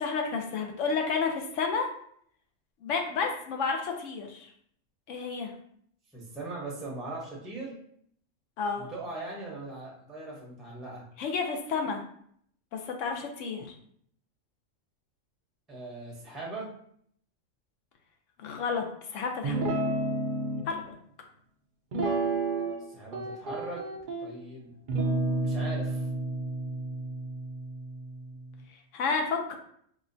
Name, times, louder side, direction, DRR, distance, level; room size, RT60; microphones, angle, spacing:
voice 1, 0.0-1.9 2.8-4.5 5.1-5.5 8.6-8.9 11.2-12.0 12.7-13.7 18.4-18.8 19.1-19.6 20.7-20.8 28.9-29.5, left 5 dB, 75° left, 3 dB, 0.9 m, -30 dB
voice 2, 6.1-7.8 8.8-11.0 15.7-16.7 22.9-23.8 24.2-24.7 25.4-26.1, right 2 dB, ahead, -3 dB, 0.6 m, -40 dB
Guitar, 19.4-20.6 21.9-22.8 23.1-24.3 24.9-28.4, right 2 dB, 60° right, 0.5 m, -31 dB
4.2 x 2.2 x 2.6 m, 0.64 s
omnidirectional pair, 1.3 m